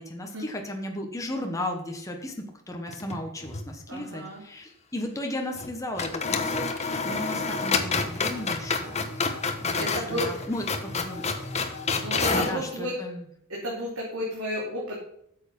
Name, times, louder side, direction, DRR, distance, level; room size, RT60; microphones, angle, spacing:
voice 1, 0.0-9.0 9.6-11.2 12.3-13.2, left 1 dB, 15° left, 2 dB, 1.2 m, -35 dB
sound 1, 2.9-3.7 4.0-4.1 5.5-5.7 6.0-12.6, left 4 dB, 30° left, 1.0 m, -29 dB
voice 2, 3.9-4.4 9.7-10.3 12.0-12.9 13.5-15.0, equal, 70° right, -4 dB, 2.9 m, -32 dB
9.0 x 7.2 x 5.4 m, 0.73 s
head